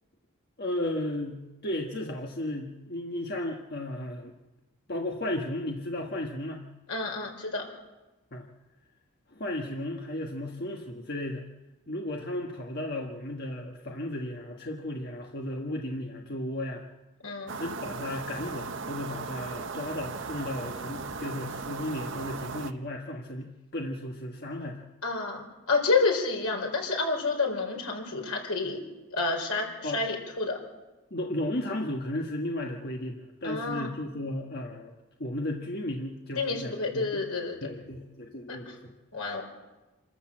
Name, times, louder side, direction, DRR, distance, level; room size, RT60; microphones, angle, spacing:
voice 1, 0.6-4.3 4.9-6.7 8.3-8.5 9.3-11.4 11.9-16.8 17.6-24.8 29.8-30.0 31.1-34.9 35.2-37.3 37.6-38.9, left 1 dB, 45° left, 1 dB, 1.5 m, -34 dB
voice 2, 6.9-7.6 17.2-17.6 25.0-25.4 25.7-28.8 29.1-30.6 33.4-33.9 36.4-37.6 38.5-38.6 39.1-39.4, left 3 dB, 85° left, 1 dB, 4.7 m, -29 dB
sound 1, 17.5-22.7, right 4 dB, 55° right, 0.9 m, -37 dB
27.0 x 13.5 x 7.6 m, 1.1 s
head